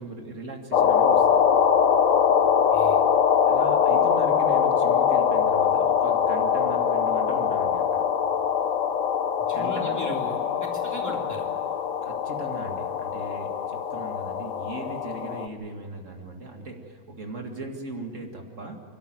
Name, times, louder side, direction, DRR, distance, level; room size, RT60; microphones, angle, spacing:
voice 1, 0.0-1.6 3.5-8.1 9.5-10.2 12.0-18.8, right 2 dB, 70° right, 2 dB, 2.4 m, -38 dB
sound 1, 0.7-15.5, left 7 dB, 80° left, 1.4 m, -23 dB
voice 2, 2.4-3.0 9.5-11.5, equal, 10° left, -1 dB, 3.3 m, -38 dB
28.5 x 13.0 x 9.3 m, 2.3 s
omnidirectional pair, 1.4 m